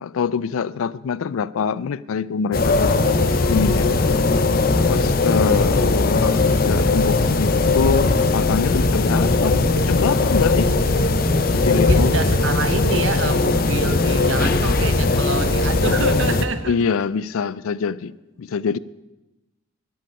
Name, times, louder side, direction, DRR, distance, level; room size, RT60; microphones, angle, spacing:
voice 1, 0.0-3.0 3.5-3.9 4.8-10.7 11.5-12.1 16.7-18.1 18.4-18.8, left 6 dB, 85° left, 20 dB, 0.4 m, -24 dB
sound 1, 2.5-16.5, left 3 dB, 45° left, 0.7 m, -19 dB
sound 2, 2.7-6.0 6.3-16.0, left 2 dB, 15° left, 2.5 m, -33 dB
voice 2, 11.7-16.8, right 4 dB, 65° right, 10 dB, 0.9 m, -27 dB
12.5 x 11.0 x 5.4 m, 1.0 s
head